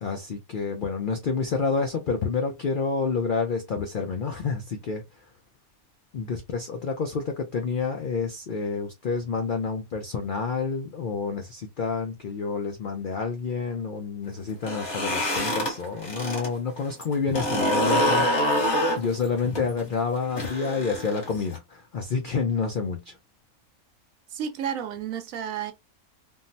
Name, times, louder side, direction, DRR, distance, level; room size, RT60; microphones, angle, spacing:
voice 1, 0.0-5.3 6.1-23.2, left 5 dB, 70° left, 0.5 m, -29 dB
sound 1, 14.5-16.5 16.8-21.6, equal, 50° left, 1.6 m, -26 dB
voice 2, 24.3-25.7, right 8 dB, 70° right, 1.0 m, -31 dB
3.6 x 2.0 x 2.6 m
omnidirectional pair, 1.5 m